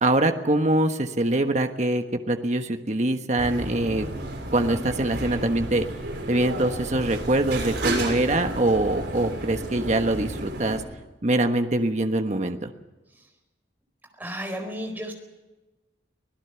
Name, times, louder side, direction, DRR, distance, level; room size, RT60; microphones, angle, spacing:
voice 1, 0.0-4.1 4.5-5.9 6.3-10.8 11.2-12.7, right 1 dB, 40° right, 6 dB, 1.3 m, -24 dB
sound 1, 3.4-10.8, right 1 dB, 80° right, 6.7 m, -32 dB
voice 2, 14.2-15.1, equal, 10° right, 3 dB, 4.4 m, -32 dB
25.0 x 17.5 x 7.1 m, 1.1 s
head